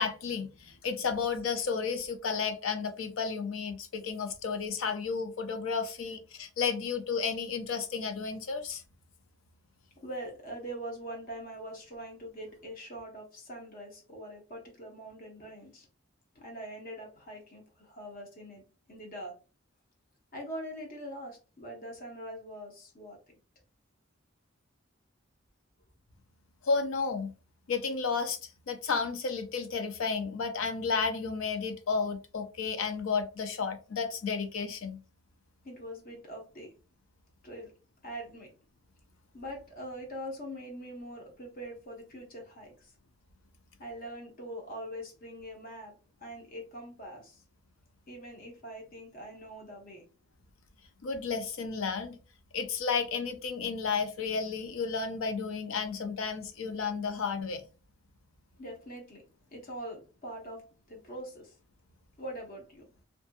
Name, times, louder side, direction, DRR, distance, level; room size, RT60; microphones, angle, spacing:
voice 1, 0.0-8.8 26.6-27.3 27.7-35.0 51.0-52.2 52.5-57.6, left 5 dB, 80° left, 0.4 m, -32 dB
voice 2, 10.0-15.9 16.3-19.4 20.3-23.2 35.6-36.7 37.4-37.7 38.0-38.5 39.3-42.9 43.8-47.4 48.1-50.0 58.6-59.2 59.5-61.6 62.2-62.9, right 1 dB, 45° left, 0.7 m, -43 dB
2.6 x 2.6 x 2.2 m
head